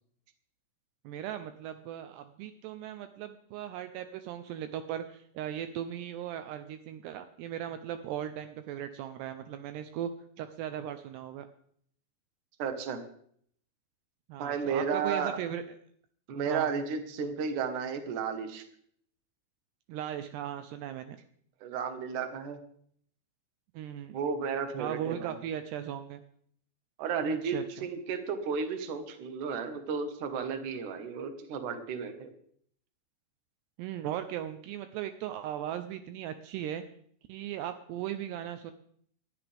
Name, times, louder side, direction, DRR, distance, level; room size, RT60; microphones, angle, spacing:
voice 1, 1.0-10.1 10.4-11.5 14.3-15.6 16.5-16.7 19.9-21.2 23.7-24.2 24.8-26.2 27.3-27.9 33.8-36.8 37.3-38.7, right 10 dB, 90° right, 9 dB, 2.3 m, -38 dB
voice 2, 12.6-13.0 14.4-15.4 16.3-18.6 21.6-22.6 24.1-25.4 27.0-32.3, right 6 dB, 65° right, 7 dB, 2.0 m, -33 dB
19.0 x 13.0 x 3.5 m, 0.63 s
omnidirectional pair, 5.6 m